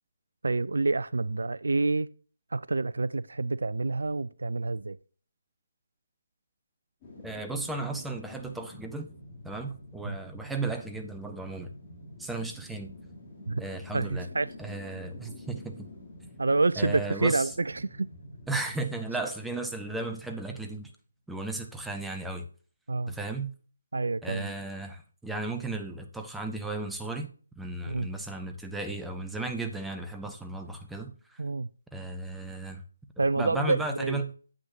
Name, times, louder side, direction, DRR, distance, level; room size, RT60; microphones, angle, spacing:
voice 1, 0.4-2.1 2.5-5.0 10.1-10.2 13.5-13.6 13.9-14.5 16.4-18.1 22.9-23.2 23.9-24.5 27.9-28.1 31.4-31.7 33.2-34.2, right 3 dB, 60° right, 0.3 m, -28 dB
sound 1, 7.0-20.0 20.4-20.5, left 1 dB, 20° left, 2.8 m, -48 dB
voice 2, 7.2-9.1 9.4-11.7 12.2-12.9 13.6-14.3 14.6-15.8 16.8-17.5 18.5-20.9 21.3-22.5 23.1-23.5 24.2-31.4 31.9-32.8 33.2-34.3, right 2 dB, 5° right, 0.6 m, -35 dB
8.6 x 7.8 x 2.6 m
figure-of-eight pair, 150°, 0 cm